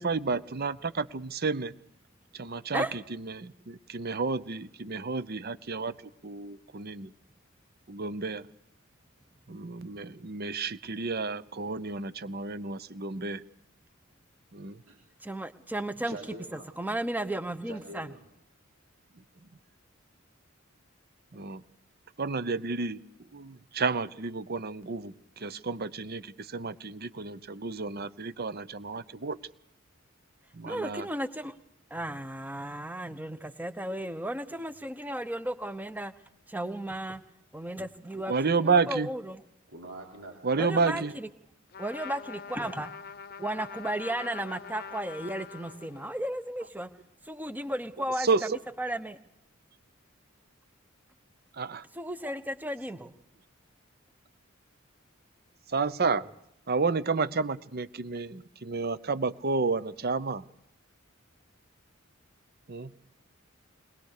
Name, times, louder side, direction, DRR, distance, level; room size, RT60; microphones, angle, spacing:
voice 1, 0.0-1.7 2.3-5.9 6.2-7.1 7.9-8.5 9.5-13.4 14.5-14.8 21.3-21.6 22.2-23.0 23.3-29.4 30.5-31.1 38.3-39.1 40.4-41.1 48.2-48.6 51.5-51.8 55.7-56.2 56.7-60.4 62.7-62.9, right 4 dB, 50° right, 15 dB, 0.8 m, -31 dB
voice 2, 15.2-16.2 16.5-18.1 30.7-31.5 31.9-36.1 36.5-37.2 37.5-38.3 38.6-39.4 40.6-41.3 41.8-42.9 43.4-46.9 47.3-48.3 48.8-49.2 51.9-53.1, right 1 dB, 10° right, 12 dB, 1.0 m, -34 dB
voice 3, 16.1-16.7 17.6-18.2 39.7-41.1, right 2 dB, 80° right, -1 dB, 3.7 m, -44 dB
Trumpet, 41.7-46.3, left 6 dB, 50° left, 0.8 m, -44 dB
21.5 x 20.5 x 6.6 m, 0.77 s
head